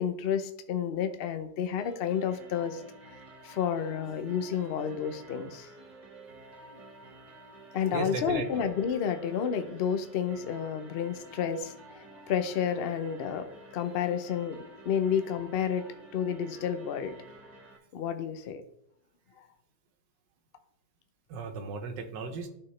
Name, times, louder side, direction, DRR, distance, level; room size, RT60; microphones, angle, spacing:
voice 1, 0.0-2.8 3.4-5.7 7.7-13.5 13.7-14.6 14.9-15.9 16.1-17.1 17.9-18.6 19.4-19.5, left 8 dB, 90° left, 8 dB, 0.5 m, -30 dB
sound 1, 1.8-17.8, right 1 dB, 25° right, 1.3 m, -50 dB
voice 2, 7.9-8.7 21.3-22.5, right 3 dB, 90° right, 6 dB, 1.5 m, -35 dB
12.0 x 4.3 x 3.2 m, 0.76 s
omnidirectional pair, 1.9 m